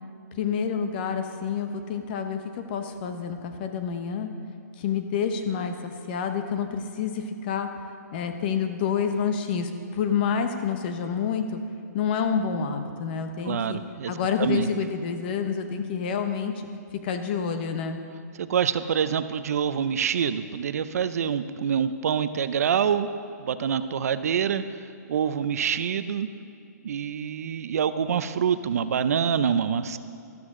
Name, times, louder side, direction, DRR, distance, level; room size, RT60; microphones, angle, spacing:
voice 1, 0.3-4.3 4.8-7.7 8.1-11.6 11.9-13.8 14.1-16.5 17.0-18.0, left 6 dB, 35° left, 7 dB, 0.8 m, -28 dB
voice 2, 13.4-14.1 14.4-14.7 18.4-23.1 23.4-24.6 25.1-26.3 26.8-30.0, right 7 dB, 60° right, 12 dB, 0.5 m, -26 dB
13.0 x 13.0 x 3.7 m, 2.6 s
hypercardioid pair, 165°, 9 cm